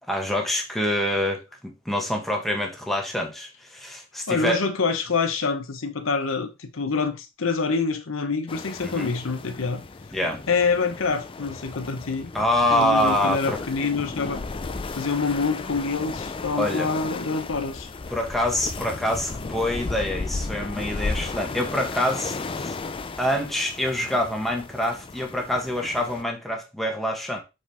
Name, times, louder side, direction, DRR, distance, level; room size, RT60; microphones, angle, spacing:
voice 1, 0.1-4.6 8.8-9.1 10.1-10.4 12.3-13.6 16.6-16.9 18.1-22.7 23.2-27.4, left 1 dB, ahead, 1.3 m, -26 dB
voice 2, 4.3-9.8 10.5-12.3 12.7-14.4 14.9-17.9, left 4 dB, 70° left, 0.9 m, -26 dB
sound 1, 8.5-26.2, left 3 dB, 25° left, 0.4 m, -34 dB
5.9 x 4.9 x 3.4 m
head